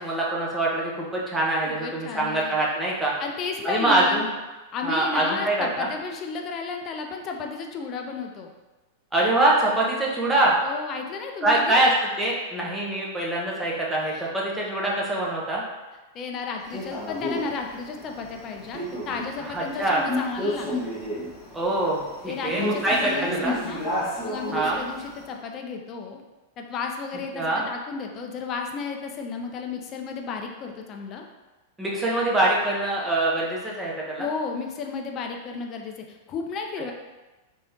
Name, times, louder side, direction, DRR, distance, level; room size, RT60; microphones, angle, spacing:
voice 1, 0.0-3.1 3.6-4.3 4.8-5.9 9.1-10.6 11.4-15.6 19.4-20.0 21.5-23.6 24.5-24.8 27.3-27.6 31.8-34.3, right 2 dB, 10° right, -4 dB, 0.9 m, -24 dB
voice 2, 1.7-2.5 3.2-4.2 4.7-8.5 10.6-11.8 14.1-14.3 16.1-20.8 22.2-23.9 24.2-26.2 26.6-31.3 34.2-36.9, left 5 dB, 35° left, 3 dB, 0.5 m, -33 dB
Male speech man speaking, 16.7-25.2, left 1 dB, 5° left, 1.3 m, -32 dB
3.5 x 3.3 x 2.7 m, 1.2 s
figure-of-eight pair, 95°, 0 cm